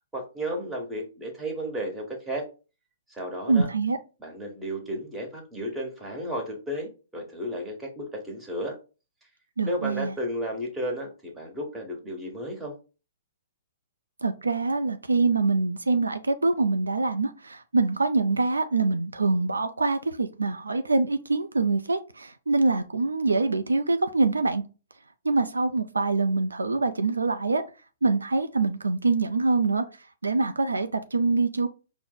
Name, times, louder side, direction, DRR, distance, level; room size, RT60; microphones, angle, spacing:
voice 1, 0.1-2.5 3.1-3.7 4.2-8.8 9.6-12.8, equal, 10° right, 1.3 m, -33 dB
voice 2, 3.5-4.0 9.6-10.1 14.2-24.6 25.2-27.6 28.0-29.8 30.2-31.7, right 3 dB, 85° right, 0.4 m, -24 dB
4.4 x 2.0 x 3.8 m
hypercardioid pair, 125°, 0 cm